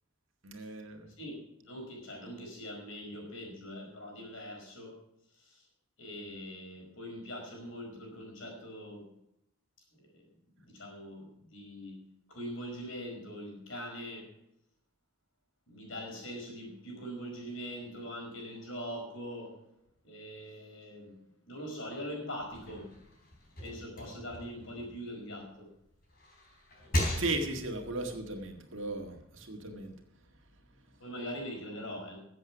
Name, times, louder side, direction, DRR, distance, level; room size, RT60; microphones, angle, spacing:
voice 1, 0.4-1.1 27.2-29.9, right 2 dB, 65° right, 3 dB, 1.9 m, -36 dB
voice 2, 1.2-5.0 5.3-5.7 6.0-9.1 9.9-10.3 10.6-12.0 12.3-14.3 15.7-19.6 20.0-21.2 21.4-22.9 23.6-25.7 31.0-32.2, equal, 65° left, 1 dB, 5.1 m, -42 dB
sound 1, 22.4-25.6 26.0-27.8, equal, 45° left, 4.0 m, -37 dB
14.5 x 7.8 x 6.2 m, 0.80 s
head